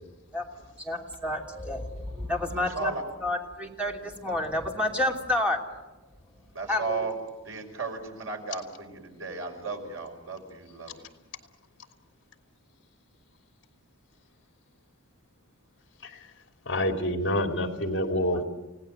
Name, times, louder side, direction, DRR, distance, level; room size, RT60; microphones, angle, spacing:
voice 1, 0.8-5.7 6.7-7.2, left 1 dB, 5° right, 0 dB, 3.0 m, -30 dB
voice 2, 6.6-7.1 7.5-8.9 9.2-10.9, right 4 dB, 70° right, 3 dB, 5.2 m, -34 dB
voice 3, 16.6-18.4, left 1 dB, 55° left, 5 dB, 3.0 m, -27 dB
30.0 x 18.0 x 8.0 m, 1.1 s
head